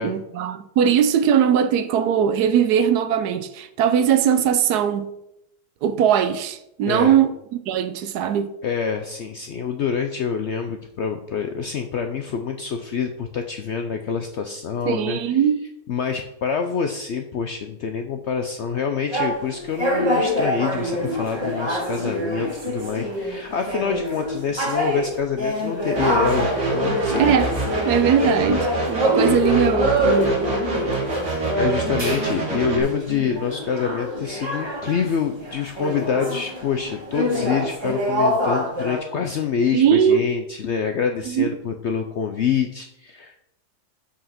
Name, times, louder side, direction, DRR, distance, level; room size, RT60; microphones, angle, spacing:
voice 1, 0.0-5.1 5.8-7.3 7.7-8.5 14.9-15.6 27.2-27.5 27.8-30.4 39.7-40.2 41.3-41.5, right 8 dB, 75° right, 1.1 m, -20 dB
voice 2, 6.9-7.2 8.6-15.4 15.9-27.3 28.0-28.4 31.5-43.4, left 6 dB, 70° left, 0.6 m, -26 dB
sound 1, 19.1-35.1 35.4-39.0, equal, 15° right, 1.7 m, -25 dB
sound 2, 26.0-32.8, right 3 dB, 45° right, 1.9 m, -27 dB
5.8 x 4.8 x 5.7 m
omnidirectional pair, 1.7 m